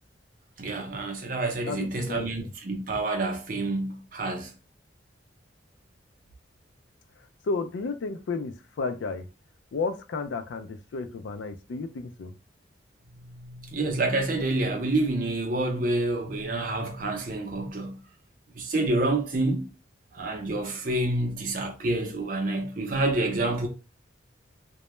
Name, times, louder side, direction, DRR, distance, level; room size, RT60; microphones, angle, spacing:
voice 1, 0.6-4.5 13.1-18.0 18.5-19.6 20.1-23.7, right 2 dB, 45° right, 0.5 m, -28 dB
voice 2, 1.7-2.5 7.5-9.2 9.7-12.3, left 4 dB, 80° left, 0.4 m, -32 dB
2.2 x 2.0 x 3.0 m
head